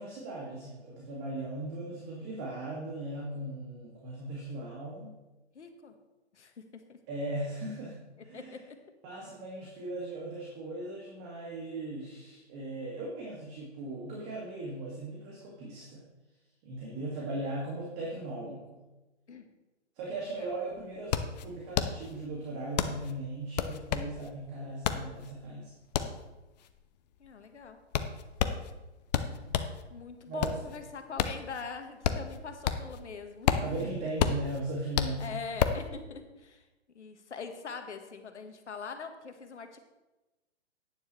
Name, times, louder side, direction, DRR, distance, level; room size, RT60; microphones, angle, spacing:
voice 1, 0.0-5.1 7.1-8.6 9.0-16.0 16.6-18.8 20.0-25.7 29.3-29.7 30.3-30.6 33.6-35.4, right 2 dB, 30° right, -4 dB, 2.2 m, -38 dB
voice 2, 5.5-6.0 6.3-7.0 8.3-8.8 16.9-17.3 19.3-19.5 20.2-20.5 27.2-27.8 29.9-33.9 35.2-36.7 36.9-39.8, left 5 dB, 70° left, 7 dB, 1.4 m, -43 dB
sound 1, 20.2-20.3 20.5-29.8 30.2-33.0 33.3-35.9, left 9 dB, 35° left, 0.6 m, -31 dB
11.0 x 9.6 x 3.2 m, 1.1 s
figure-of-eight pair, 125°, 35 cm